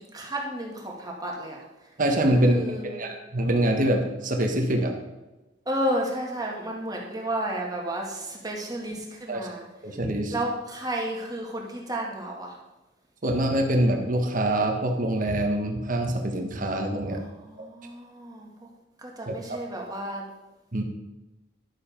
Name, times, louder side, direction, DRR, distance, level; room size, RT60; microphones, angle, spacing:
voice 1, 0.1-1.6 2.4-3.1 5.7-9.6 10.3-12.6 17.1-18.7 19.0-20.2, right 1 dB, 20° right, -1 dB, 2.1 m, -32 dB
voice 2, 2.0-4.9 9.3-9.5 9.8-10.4 13.2-17.2 17.6-17.7 19.3-19.4 20.7-20.8, right 1 dB, 45° right, 3 dB, 1.4 m, -24 dB
11.0 x 7.4 x 5.2 m, 1.1 s
head